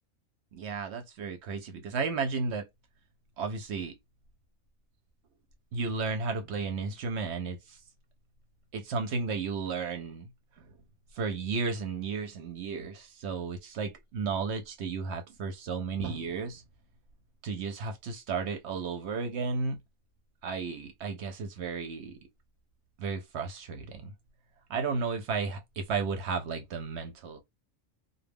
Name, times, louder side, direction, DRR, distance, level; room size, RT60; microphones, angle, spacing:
voice 1, 0.5-2.7 3.4-4.0 5.7-7.8 8.7-10.3 10.6-10.7 11.1-16.6 17.4-19.8 20.4-22.2 23.0-24.1 24.7-27.4, right 4 dB, 65° right, 0.8 m, -33 dB
2.2 x 2.1 x 3.3 m
omnidirectional pair, 1.4 m